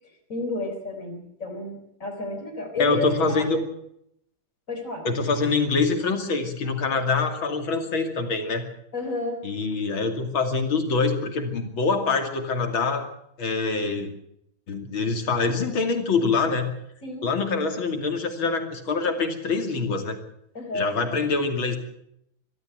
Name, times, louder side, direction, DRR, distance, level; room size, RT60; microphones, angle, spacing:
voice 1, 0.3-3.6 4.7-5.0 8.9-9.4 17.0-17.3 20.5-20.9, left 2 dB, 40° left, 5 dB, 4.3 m, -31 dB
voice 2, 2.8-3.6 5.0-8.6 9.4-13.1 13.4-14.1 14.7-16.7 17.2-20.2 20.7-21.8, left 4 dB, 85° left, 6 dB, 3.4 m, -25 dB
24.0 x 13.5 x 8.1 m, 0.74 s
omnidirectional pair, 2.2 m